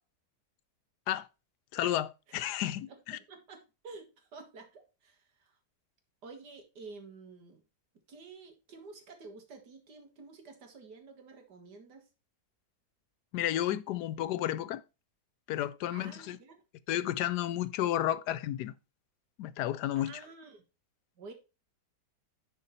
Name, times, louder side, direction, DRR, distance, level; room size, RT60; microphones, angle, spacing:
voice 1, 1.7-3.2 13.3-14.8 15.5-16.4 16.9-18.7 19.4-20.2, left 12 dB, 80° left, 1.2 m, -32 dB
voice 2, 2.9-5.6 6.2-7.6 8.1-12.1 15.9-16.6 20.0-20.6 21.2-21.3, right 4 dB, 80° right, 2.2 m, -50 dB
10.5 x 4.6 x 4.2 m
omnidirectional pair, 1.8 m